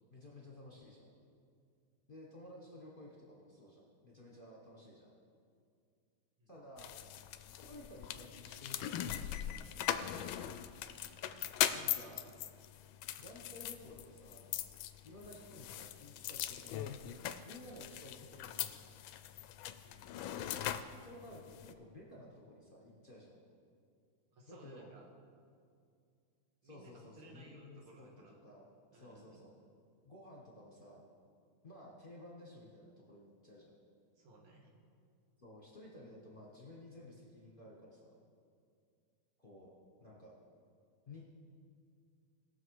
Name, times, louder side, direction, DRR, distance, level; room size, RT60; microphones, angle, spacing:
voice 1, 0.1-1.1 2.1-5.1 6.5-7.0 7.5-10.1 11.7-12.3 13.2-14.4 15.0-18.9 21.0-23.4 24.5-24.9 26.6-28.1 28.4-29.5 30.1-31.0 31.6-33.7 35.4-38.1 39.4-39.7 40.0-40.3 41.1-41.3, left 1 dB, 30° left, -3 dB, 1.2 m, -54 dB
sound 1, 6.8-21.7, left 11 dB, 75° left, 1.3 m, -41 dB
voice 2, 19.8-20.1 24.3-25.1 26.6-28.4 28.9-29.4 34.2-34.7, right 2 dB, 75° right, -1 dB, 2.5 m, -59 dB
19.0 x 6.5 x 4.7 m, 2.3 s
omnidirectional pair, 2.4 m